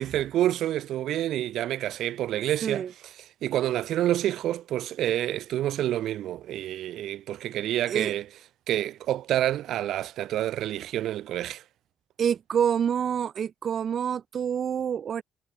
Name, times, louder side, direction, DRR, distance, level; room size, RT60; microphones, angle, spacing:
voice 1, 0.0-2.8 3.4-8.2 8.7-11.6, right 12 dB, 80° right, 1.2 m, -28 dB
voice 2, 2.6-2.9 7.9-8.1 12.2-15.2, right 8 dB, 55° right, 0.9 m, -27 dB
cardioid pair, 90°, 0 cm